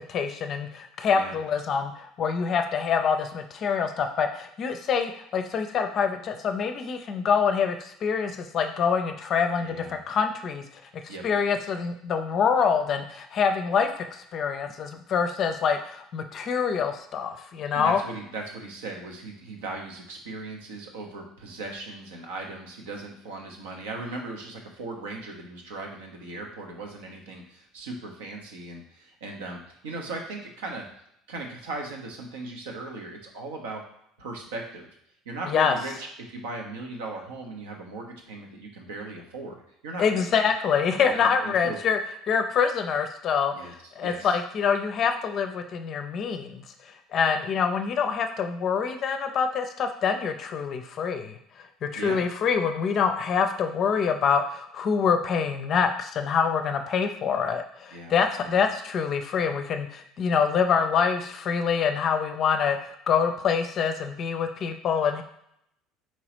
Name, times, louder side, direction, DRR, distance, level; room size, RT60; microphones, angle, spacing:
voice 1, 0.1-10.6 10.9-18.0 35.5-35.8 40.0-42.0 42.3-46.6 47.1-65.2, left 6 dB, 45° left, 7 dB, 0.5 m, -26 dB
voice 2, 9.6-9.9 11.1-11.2 17.7-30.9 31.3-33.8 34.2-34.9 35.3-40.3 41.0-41.8 43.5-44.3 52.0-52.2 57.9-58.1 58.4-58.5, right 3 dB, 70° right, 2 dB, 0.9 m, -38 dB
4.4 x 3.9 x 3.0 m, 0.73 s
figure-of-eight pair, 65°, 0 cm